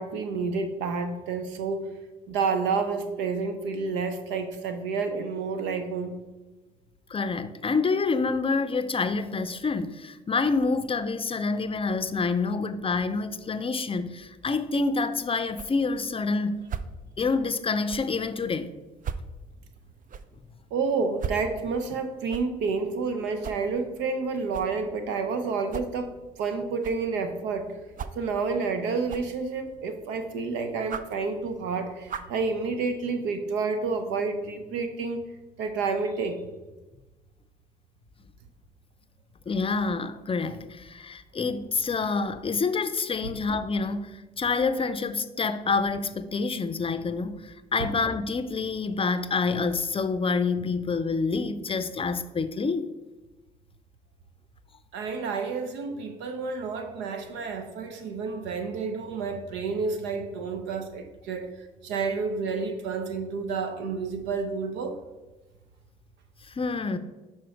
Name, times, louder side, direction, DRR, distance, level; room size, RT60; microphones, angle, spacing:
voice 1, 0.0-1.9 2.3-6.1 20.7-27.7 28.2-35.2 35.6-36.4 43.2-43.3 47.8-47.9 54.9-61.5 61.8-65.0, right 4 dB, 75° right, 0.7 m, -29 dB
voice 2, 7.1-16.6 17.2-18.7 39.5-52.9 66.5-67.0, left 4 dB, 30° left, 0.5 m, -27 dB
sound 1, 14.4-32.4, right 6 dB, 45° right, 0.5 m, -42 dB
6.1 x 4.4 x 4.5 m
hypercardioid pair, 50°, 19 cm